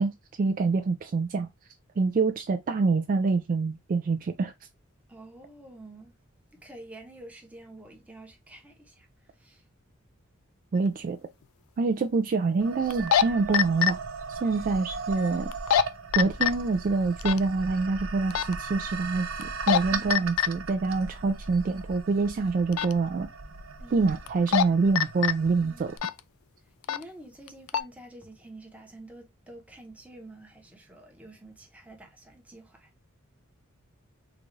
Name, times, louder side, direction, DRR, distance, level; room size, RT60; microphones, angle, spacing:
voice 1, 0.0-1.5 2.0-4.5 10.7-11.2 11.8-14.0 14.3-15.5 16.1-23.3 23.9-25.9, right 4 dB, 40° right, 0.3 m, -26 dB
voice 2, 5.1-6.1 6.6-9.1 9.4-9.6 23.8-24.1 25.6-25.9 26.9-32.9, right 1 dB, 5° right, 0.8 m, -48 dB
sound 1, 10.9-11.0 12.9-13.2 13.5-13.9 15.5-15.8 16.1-16.5 17.2-17.4 18.3-18.5 19.4-19.8 20.1-20.5 22.7-22.9 24.3-24.6 25.0-25.3 26.0-26.2 26.8-27.0 27.5-27.8, left 9 dB, 70° left, 0.3 m, -23 dB
sound 2, 12.6-26.0, right 4 dB, 75° right, 0.7 m, -38 dB
3.9 x 2.4 x 3.1 m
head